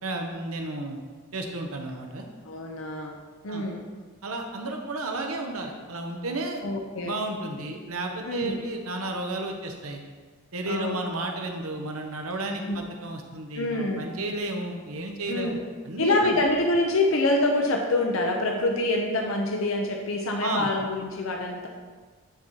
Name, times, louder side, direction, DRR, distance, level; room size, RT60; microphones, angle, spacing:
voice 1, 0.0-1.0 1.3-2.3 3.5-3.7 4.2-6.6 7.0-10.0 10.5-15.6 15.8-16.4 20.4-20.7, right 2 dB, 75° right, 3 dB, 1.0 m, -32 dB
voice 2, 2.4-3.2 3.4-3.8 6.6-7.1 8.2-8.6 10.7-11.0 12.7-12.8 13.5-14.1 15.3-15.6 16.0-21.7, left 2 dB, 65° left, 2 dB, 0.7 m, -26 dB
10.5 x 4.3 x 4.7 m, 1.4 s
head